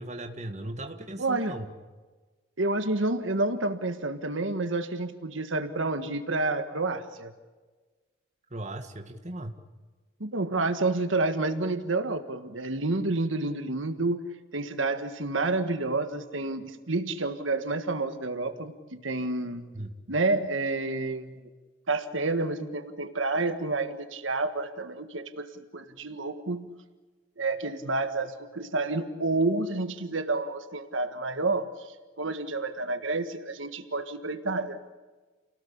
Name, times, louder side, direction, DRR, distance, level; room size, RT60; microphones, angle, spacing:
voice 1, 0.0-1.7 8.5-9.5 19.8-19.9, right 1 dB, 35° right, 6 dB, 2.0 m, -37 dB
voice 2, 1.2-1.6 2.6-7.3 10.2-14.2 14.5-19.7 20.1-21.4 21.9-26.7 27.4-34.8, right 2 dB, 75° right, 9 dB, 1.6 m, -29 dB
29.5 x 19.0 x 8.7 m, 1.3 s
head